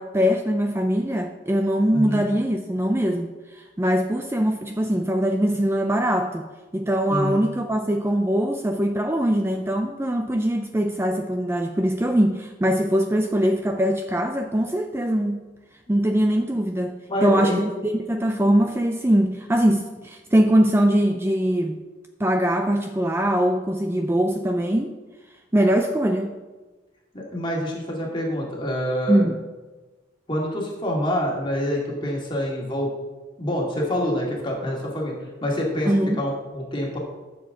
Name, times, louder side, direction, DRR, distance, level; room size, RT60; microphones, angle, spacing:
voice 1, 0.0-6.4 6.7-15.4 15.9-21.7 22.2-24.9 25.5-26.4 29.1-29.4 35.9-36.2, equal, 15° right, 4 dB, 0.5 m, -22 dB
voice 2, 1.9-2.3 7.1-7.4 17.1-17.6 27.1-29.3 30.3-32.9 33.4-35.1 35.4-37.0, equal, 25° left, -2 dB, 2.2 m, -26 dB
12.5 x 7.0 x 3.8 m, 1.2 s
head